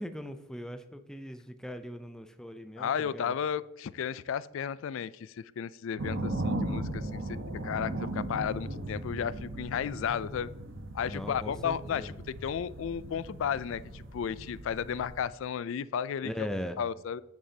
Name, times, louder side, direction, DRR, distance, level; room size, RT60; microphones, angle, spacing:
voice 1, 0.0-3.3 11.0-12.2 16.2-16.8, equal, 5° left, 8 dB, 0.4 m, -40 dB
voice 2, 2.8-7.4 7.6-10.5 10.9-16.5 16.8-17.2, left 8 dB, 65° left, 18 dB, 0.3 m, -33 dB
sound 1, 6.0-15.3, right 2 dB, 60° right, 0.9 m, -37 dB
10.5 x 7.7 x 2.8 m, 0.98 s
head